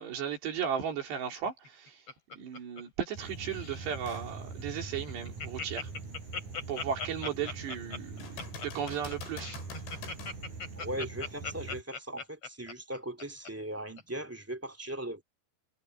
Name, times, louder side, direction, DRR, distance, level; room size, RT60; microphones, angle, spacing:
voice 1, 0.0-2.0 2.4-5.9 6.7-8.3 8.6-9.6, right 7 dB, 70° right, 5.9 m, -35 dB
Laughter, 1.5-3.2 3.5-3.9 4.3-4.4 4.7-4.8 5.1-13.5 14.0-14.1, left 4 dB, 35° left, 4.1 m, -39 dB
sound 1, 3.1-11.8, right 4 dB, 40° right, 7.0 m, -43 dB
sound 2, 4.1-4.3 4.9-5.0 8.2-10.4 14.1-14.2, left 5 dB, 85° left, 7.3 m, -46 dB
voice 2, 10.8-15.2, right 1 dB, 10° right, 0.7 m, -39 dB
omnidirectional pair, 5.2 m